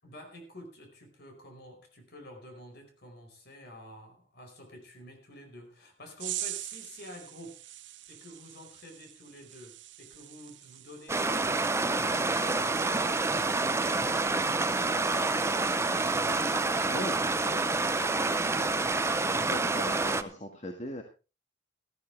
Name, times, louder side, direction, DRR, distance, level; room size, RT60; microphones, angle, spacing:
voice 1, 0.0-7.6 8.1-18.9, left 1 dB, 55° left, 5 dB, 4.8 m, -49 dB
sound 1, 6.2-16.9 17.2-17.6, right 14 dB, 65° right, 0.9 m, -45 dB
Stream, 11.1-20.2, right 3 dB, 15° right, 0.7 m, -28 dB
voice 2, 19.5-21.0, left 1 dB, 35° left, 3 dB, 1.7 m, -38 dB
15.0 x 14.0 x 3.4 m, 0.32 s
head